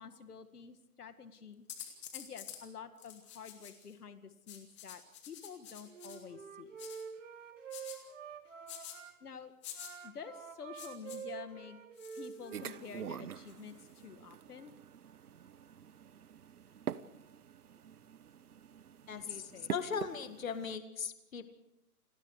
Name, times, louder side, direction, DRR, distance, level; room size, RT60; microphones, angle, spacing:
voice 1, 0.0-1.6 2.1-6.7 9.2-9.5 10.0-11.8 12.2-14.7 19.1-19.7, left 6 dB, 85° left, 9 dB, 2.1 m, -49 dB
sound 1, 1.7-2.6 3.0-3.9 4.5-6.2 6.8-7.0 7.7-8.0 8.7-9.0 9.6-9.9 10.8-11.2 12.0-12.9 13.5-14.0, left 10 dB, 20° left, 2.3 m, -49 dB
Wind instrument woodwind instrument, 5.8-9.1 9.7-13.3, right 7 dB, 55° right, 3.1 m, -48 dB
sound 2, 12.5-20.8, right 9 dB, 80° right, 1.1 m, -46 dB
voice 2, 19.1-19.4 19.7-21.5, left 7 dB, 60° left, 9 dB, 2.1 m, -38 dB
29.5 x 20.5 x 4.9 m, 0.83 s
hypercardioid pair, 180°, 45 cm